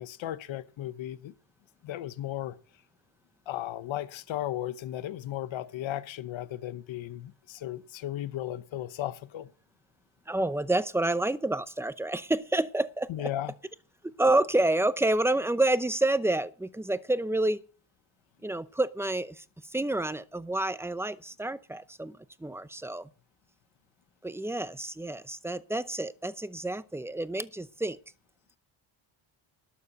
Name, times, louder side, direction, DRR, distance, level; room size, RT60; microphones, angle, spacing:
voice 1, 0.0-1.3 1.8-2.6 3.5-9.5 13.1-13.5, left 13 dB, 75° left, 1.0 m, -35 dB
voice 2, 10.3-13.3 14.2-17.6 18.4-19.4 19.7-23.1 24.2-28.0, right 2 dB, 5° right, 0.7 m, -28 dB
12.0 x 7.1 x 6.6 m
cardioid pair, 100°, 46 cm